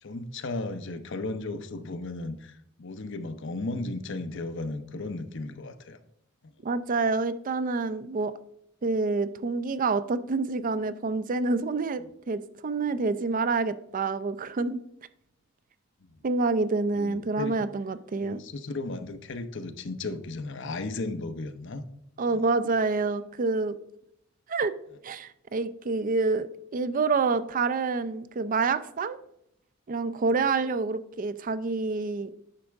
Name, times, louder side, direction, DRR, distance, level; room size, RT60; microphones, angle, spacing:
voice 1, 0.0-6.0 16.0-16.2 16.9-17.6 18.2-21.8 22.3-22.4, left 2 dB, 65° left, 10 dB, 0.8 m, -35 dB
voice 2, 6.6-8.3 8.8-14.8 16.2-18.4 22.2-23.8 24.5-24.7 25.0-26.5 26.7-29.2 29.9-32.3, right 3 dB, 40° right, 14 dB, 0.4 m, -27 dB
9.9 x 6.3 x 3.5 m, 0.74 s
head